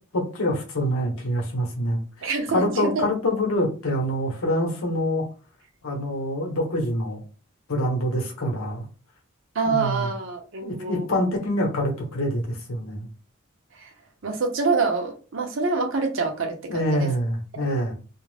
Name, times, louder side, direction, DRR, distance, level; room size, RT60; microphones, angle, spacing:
voice 1, 0.1-2.0 2.5-5.2 5.8-7.2 7.7-8.9 9.7-10.1 10.6-13.1 16.7-17.9, equal, 90° left, 0 dB, 0.9 m, -25 dB
voice 2, 2.2-3.0 9.5-11.4 13.7-13.9 14.2-17.1 17.6-17.7, right 4 dB, 65° right, 4 dB, 0.6 m, -26 dB
2.4 x 2.0 x 3.2 m, 0.35 s
head